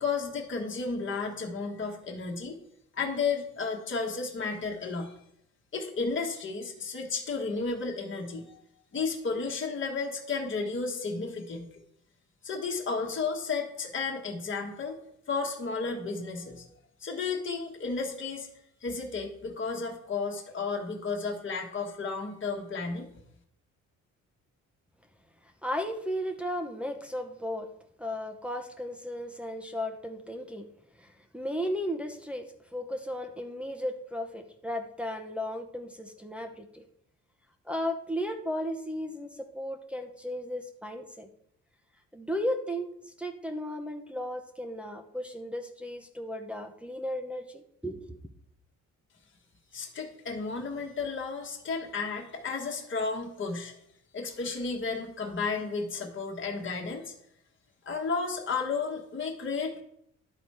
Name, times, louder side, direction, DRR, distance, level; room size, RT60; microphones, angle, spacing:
voice 1, 0.0-2.6 2.9-5.1 5.7-8.6 8.9-11.7 12.4-15.0 15.3-16.7 17.0-18.5 18.8-23.1 49.7-53.7 54.1-57.1 57.8-59.8, left 4 dB, 40° left, 0 dB, 1.5 m, -33 dB
voice 2, 25.6-27.7 28.0-30.7 31.0-32.5 32.7-36.8 37.6-41.3 42.1-42.9 43.2-48.2, equal, 5° right, 2 dB, 0.8 m, -35 dB
11.0 x 4.1 x 4.8 m, 0.74 s
cardioid pair, 90°, 30 cm